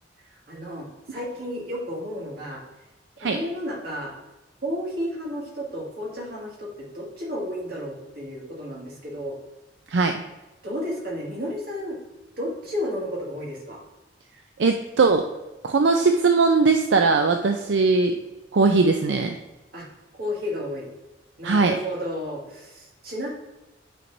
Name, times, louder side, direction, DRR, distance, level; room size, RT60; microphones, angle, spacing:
voice 1, 0.3-2.6 3.2-4.1 4.6-9.4 10.6-12.0 12.4-13.8 19.7-19.9 20.1-20.9 21.4-23.3, equal, 55° right, -3 dB, 2.1 m, -32 dB
voice 2, 14.6-15.3 15.6-18.2 18.5-19.4 21.4-21.8, right 4 dB, 80° right, 5 dB, 0.5 m, -20 dB
9.0 x 4.6 x 2.7 m, 1.0 s
head